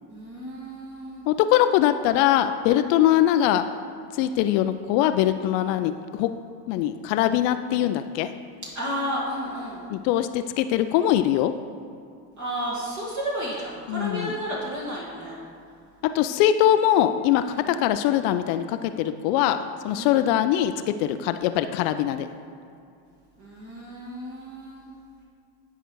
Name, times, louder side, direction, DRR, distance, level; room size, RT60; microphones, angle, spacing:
voice 1, 0.1-1.2 8.8-9.8 12.4-15.4 17.4-17.7 19.9-20.2 23.4-24.9, equal, 35° right, -5 dB, 2.1 m, -32 dB
voice 2, 1.3-3.6 4.1-6.3 6.7-8.3 9.9-11.5 13.9-14.4 16.1-19.6 19.8-22.3, left 12 dB, 60° left, 10 dB, 0.5 m, -22 dB
10.5 x 4.9 x 4.6 m, 2.5 s
hypercardioid pair, 80°, 49 cm